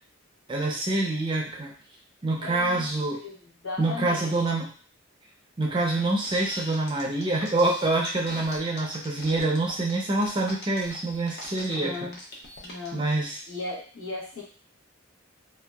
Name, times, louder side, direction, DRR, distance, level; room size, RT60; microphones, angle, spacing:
voice 1, 0.5-1.7 2.2-3.2 3.8-4.7 5.6-12.1 12.9-13.4, right 2 dB, 25° right, -1 dB, 0.4 m, -26 dB
voice 2, 2.4-2.9 3.2-3.4 3.6-4.4 11.6-12.2 12.6-13.1 13.5-14.4, left 3 dB, 80° left, -4 dB, 1.0 m, -37 dB
sound 1, 6.2-12.9, left 1 dB, 50° left, 0.6 m, -41 dB
2.6 x 2.2 x 2.2 m, 0.41 s
head